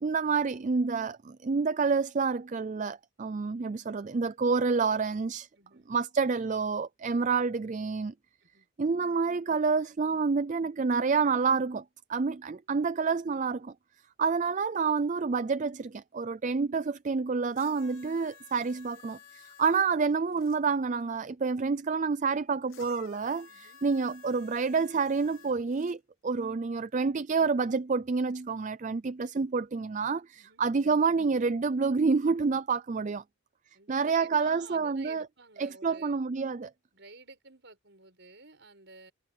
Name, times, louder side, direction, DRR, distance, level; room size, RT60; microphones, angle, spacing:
voice 1, 0.0-5.5 5.9-8.1 8.8-11.8 12.1-13.7 14.2-33.2 33.9-35.2 35.6-36.7, right 4 dB, 35° right, 0.4 m, -28 dB
voice 2, 5.5-5.9 8.4-8.7 23.5-23.8 30.4-30.6 33.7-36.2 36.9-39.1, right 3 dB, 55° right, 7.3 m, -52 dB
sound 1, 17.5-20.6 22.7-26.0 26.9-27.0, left 6 dB, 75° left, 2.6 m, -54 dB
head